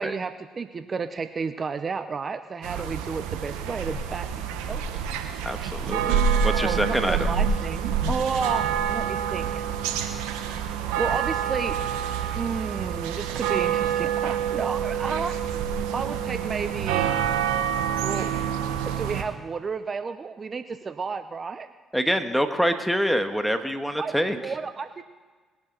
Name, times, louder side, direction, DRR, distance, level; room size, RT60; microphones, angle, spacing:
voice 1, 0.0-5.0 6.5-9.7 10.5-10.7 11.0-11.8 12.4-17.1 18.0-18.3 18.8-21.7 24.0-25.0, right 5 dB, 40° right, 11 dB, 0.7 m, -32 dB
sound 1, 2.6-19.2, right 8 dB, 85° right, 1.2 m, -27 dB
voice 2, 5.4-7.3 21.9-24.4, equal, ahead, 8 dB, 1.5 m, -26 dB
21.0 x 10.5 x 4.0 m, 1.4 s
hypercardioid pair, 60°, 0 cm